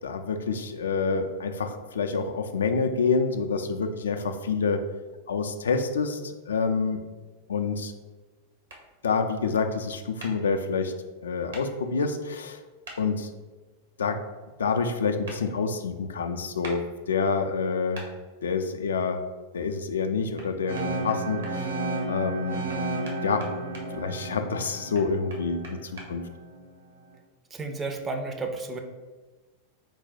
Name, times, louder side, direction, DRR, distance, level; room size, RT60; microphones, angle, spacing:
voice 1, 0.0-4.8 5.3-7.0 7.5-7.9 9.0-10.9 11.2-12.6 13.0-13.3 14.0-14.2 14.6-18.0 18.4-19.2 19.5-21.7 22.1-22.6 23.2-23.5 23.9-26.3, left 5 dB, 65° left, 7 dB, 0.3 m, -27 dB
sound 1, 8.7-8.8 10.2-10.3 11.5-11.6 12.8-13.0 15.2-15.4 16.6-16.8 17.9-18.1 20.4-20.5 20.7-21.5 22.7-23.9 24.9-26.1, right 2 dB, 65° right, 0.9 m, -42 dB
sound 2, 20.7-26.6, right 2 dB, 90° right, 1.0 m, -33 dB
voice 2, 27.5-28.8, right 3 dB, 20° right, 4 dB, 0.4 m, -32 dB
4.5 x 2.2 x 4.0 m, 1.3 s
figure-of-eight pair, 90°, 0 cm